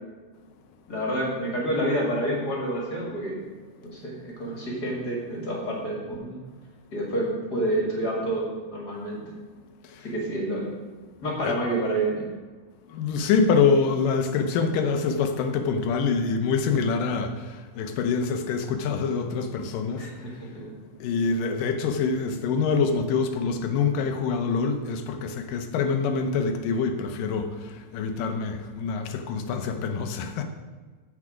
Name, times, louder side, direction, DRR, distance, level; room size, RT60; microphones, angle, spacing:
voice 1, 0.9-3.4 3.8-6.4 6.9-9.2 10.0-10.7 11.2-12.3 20.0-20.7, right 1 dB, 35° left, 1.9 m, -28 dB
voice 2, 12.9-20.1 21.0-30.5, left 5 dB, 85° left, 2.5 m, -25 dB
14.0 x 4.9 x 5.0 m
omnidirectional pair, 3.8 m